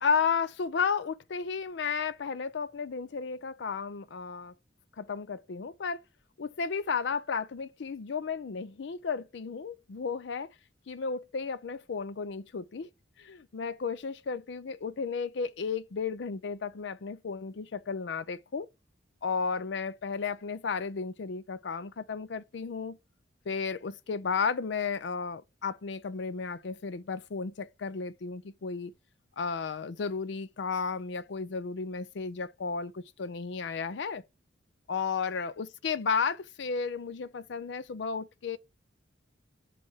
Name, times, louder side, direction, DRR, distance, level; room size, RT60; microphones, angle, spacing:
voice 1, 0.0-4.5 5.0-6.0 6.4-10.5 10.9-12.9 13.2-18.7 19.2-23.0 23.5-28.9 29.4-34.2 34.9-38.6, left 5 dB, 70° left, 0.5 m, -33 dB
7.6 x 2.5 x 5.4 m
head